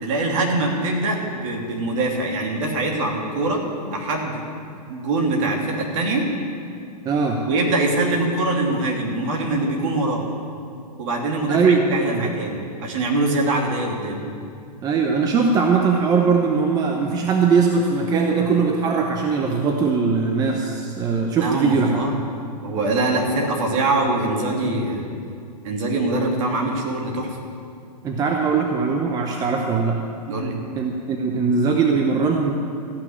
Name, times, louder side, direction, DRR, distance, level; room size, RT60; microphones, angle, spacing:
voice 1, 0.0-3.6 3.8-4.4 4.9-6.2 7.5-10.2 11.0-14.2 21.4-22.1 22.6-25.1 25.6-27.4 30.3-30.6, right 2 dB, 50° right, 0 dB, 2.8 m, -23 dB
voice 2, 7.0-7.4 11.5-12.3 14.8-22.2 28.0-30.0 30.8-32.5, right 5 dB, 20° right, 2 dB, 0.8 m, -20 dB
14.0 x 6.1 x 9.5 m, 2.4 s
hypercardioid pair, 135°, 21 cm